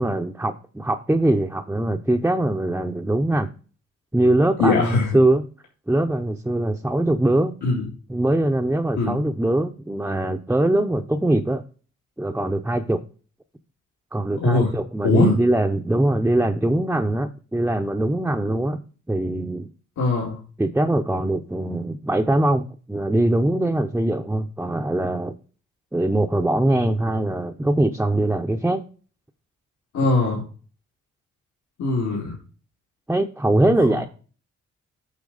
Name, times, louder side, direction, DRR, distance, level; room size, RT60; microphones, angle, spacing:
voice 1, 0.0-3.5 4.1-5.4 5.9-7.5 8.1-11.6 12.2-13.0 14.1-18.8 19.1-19.7 20.6-25.3 25.9-28.8 30.0-30.1 33.1-34.1, right 1 dB, 5° right, 0.7 m, -22 dB
voice 2, 4.6-5.2 7.6-7.9 9.0-9.2 14.4-14.7 15.0-15.3 20.0-20.4 29.9-30.4 31.8-32.4, left 3 dB, 75° left, 2.4 m, -21 dB
8.5 x 5.8 x 4.0 m
cardioid pair, 80°, 29 cm